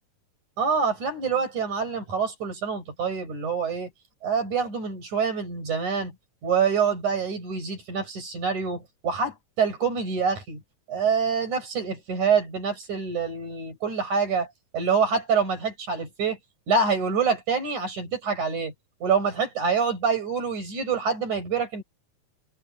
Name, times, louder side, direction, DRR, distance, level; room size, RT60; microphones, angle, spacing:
voice 1, 0.6-3.9 4.2-6.1 6.4-10.6 10.9-14.5 14.7-16.4 16.7-18.7 19.0-21.8, right 5 dB, 85° right, 8.6 m, -26 dB
omnidirectional pair, 3.3 m